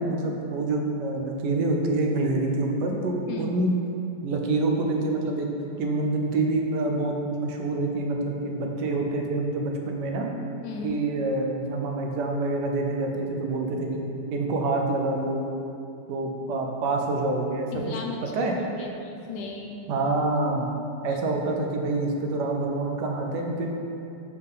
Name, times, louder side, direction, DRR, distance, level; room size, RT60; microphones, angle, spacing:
voice 1, 0.0-3.7 4.2-5.5 5.8-10.3 10.8-14.0 14.3-15.4 16.1-17.9 18.3-18.5 19.9-20.7 21.0-23.7, right 2 dB, 75° right, 1 dB, 1.3 m, -26 dB
voice 2, 10.6-11.0 17.7-19.8 21.1-21.2, left 4 dB, 75° left, 2 dB, 1.3 m, -36 dB
5.4 x 3.8 x 5.5 m, 2.7 s
omnidirectional pair, 1.9 m